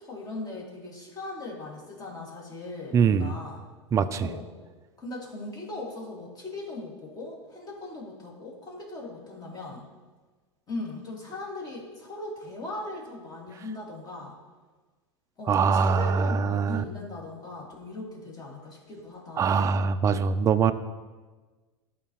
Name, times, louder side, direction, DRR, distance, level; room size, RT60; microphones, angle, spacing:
voice 1, 0.0-3.6 4.2-4.4 5.0-9.8 10.7-14.4 15.4-19.7, left 2 dB, 25° left, -2 dB, 2.3 m, -39 dB
voice 2, 2.9-3.3 3.9-4.3 15.5-16.8 19.4-20.7, right 6 dB, 20° right, 10 dB, 0.3 m, -23 dB
12.0 x 4.2 x 3.1 m, 1.3 s
hypercardioid pair, 100°, 15 cm